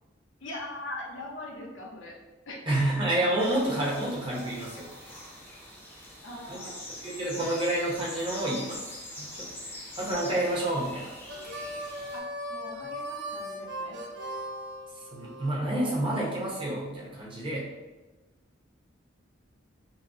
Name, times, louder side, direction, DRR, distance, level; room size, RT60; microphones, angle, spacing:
voice 1, 0.4-2.1 2.5-2.6 6.2-6.8 12.1-12.2 12.5-14.0, left 1 dB, 75° left, -2 dB, 0.9 m, -40 dB
voice 2, 2.7-5.2 6.5-6.6 6.9-8.9 9.2-11.1 15.1-17.7, right 1 dB, 25° right, -4 dB, 1.0 m, -29 dB
sound 1, 3.4-12.2, left 1 dB, 10° left, 0.8 m, -44 dB
Harmonica, 11.3-15.5, equal, 65° right, 0.6 m, -38 dB
5.7 x 2.3 x 2.7 m, 1.2 s
head